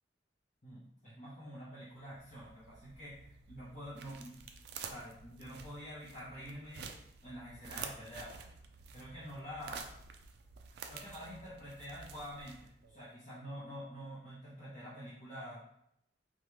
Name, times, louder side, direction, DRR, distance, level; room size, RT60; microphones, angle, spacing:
voice 1, 0.6-4.4 4.8-6.9 7.2-8.5 8.9-9.9 10.9-15.6, equal, 40° left, -11 dB, 0.9 m, -47 dB
sound 1, 1.9-13.0, right 6 dB, 60° right, 0.3 m, -50 dB
3.0 x 2.3 x 3.1 m, 0.76 s
head